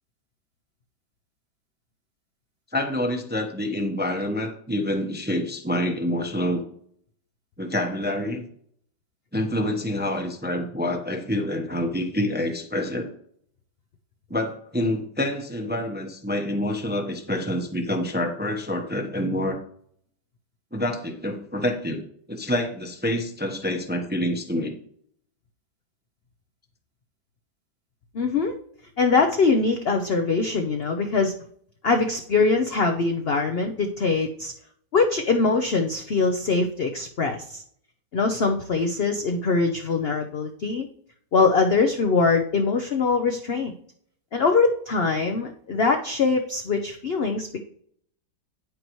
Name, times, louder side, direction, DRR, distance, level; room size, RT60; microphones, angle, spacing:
voice 1, 2.7-6.6 7.6-8.4 9.3-13.1 14.3-19.6 20.7-22.0 22.3-24.8, left 1 dB, 10° right, 3 dB, 0.6 m, -27 dB
voice 2, 28.1-28.5 29.0-31.3 31.8-34.5 34.9-37.6 38.1-40.9 41.3-43.7 44.3-47.6, left 4 dB, 65° left, 4 dB, 0.6 m, -23 dB
9.4 x 8.4 x 3.1 m, 0.63 s
omnidirectional pair, 2.0 m